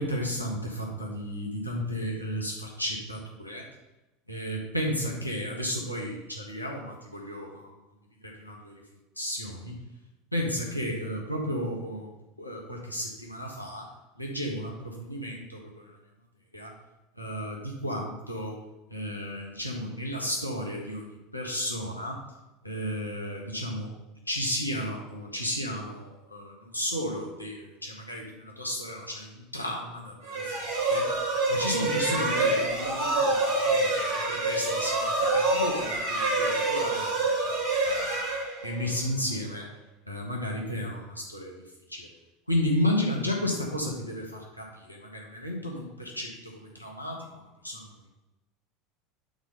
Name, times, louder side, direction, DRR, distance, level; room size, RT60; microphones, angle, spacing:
voice 1, 0.0-3.7 4.3-7.7 8.2-8.8 9.2-9.8 10.3-12.1 12.4-13.9 14.2-16.0 16.5-16.7 17.2-18.6 18.9-22.2 22.6-23.9 24.3-31.1 31.5-37.3 37.8-38.2 38.6-39.7 40.1-41.5 41.9-42.1 42.5-47.2 47.6-47.9, equal, 90° left, -1 dB, 1.4 m, -33 dB
sound 1, 30.3-39.0, right 2 dB, 65° right, 2.6 m, -27 dB
8.8 x 4.3 x 5.4 m, 1.0 s
figure-of-eight pair, 75°, 0 cm